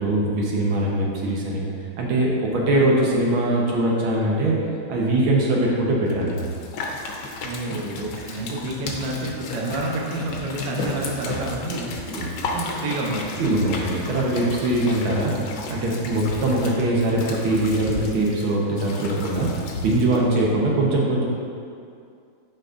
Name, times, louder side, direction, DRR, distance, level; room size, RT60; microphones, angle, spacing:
voice 1, 0.0-1.6 2.0-4.6 4.9-6.5 12.1-12.3 13.4-19.5 19.8-21.2, right 1 dB, 90° right, -3 dB, 1.9 m, -22 dB
sound 1, 6.1-20.4, left 2 dB, 70° left, 1.4 m, -34 dB
voice 2, 7.4-11.9 12.5-13.4, right 1 dB, 65° right, -2 dB, 1.4 m, -29 dB
10.5 x 5.2 x 2.5 m, 2.4 s
omnidirectional pair, 2.2 m